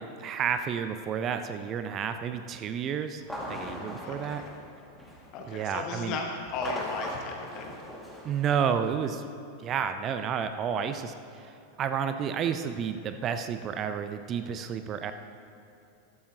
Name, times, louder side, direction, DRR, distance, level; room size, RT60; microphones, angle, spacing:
voice 1, 0.0-3.2 3.5-4.4 5.5-6.2 8.2-9.2 9.6-11.5 11.8-15.1, right 7 dB, 30° right, 9 dB, 0.5 m, -31 dB
sound 1, 3.2-5.4 6.4-9.0, left 1 dB, ahead, 2.1 m, -40 dB
voice 2, 4.0-4.5 5.3-7.8, left 4 dB, 40° left, 2 dB, 1.1 m, -36 dB
14.0 x 12.5 x 2.9 m, 2.7 s
figure-of-eight pair, 90°, 0 cm